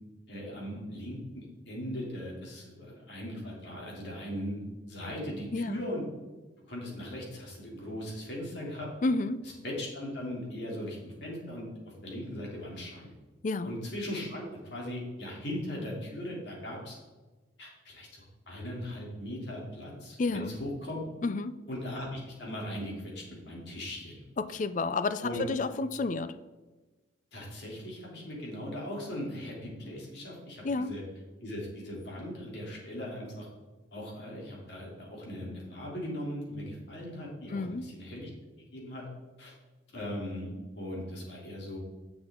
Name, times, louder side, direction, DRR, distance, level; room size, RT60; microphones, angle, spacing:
voice 1, 0.3-4.6 4.9-6.0 6.7-8.9 9.4-11.6 12.0-13.1 13.6-17.0 17.6-21.0 21.7-24.2 24.5-24.6 25.2-25.5 27.3-31.0 31.4-33.5 33.9-38.3 38.7-39.0 39.4-39.5 39.9-41.8, left 1 dB, 60° left, -3 dB, 3.0 m, -39 dB
voice 2, 5.5-5.8 9.0-9.4 13.4-13.7 20.2-20.5 21.2-21.6 24.4-26.4 30.6-30.9 37.5-37.9, left 3 dB, 40° left, 14 dB, 0.4 m, -30 dB
10.0 x 7.2 x 3.7 m, 1.2 s
head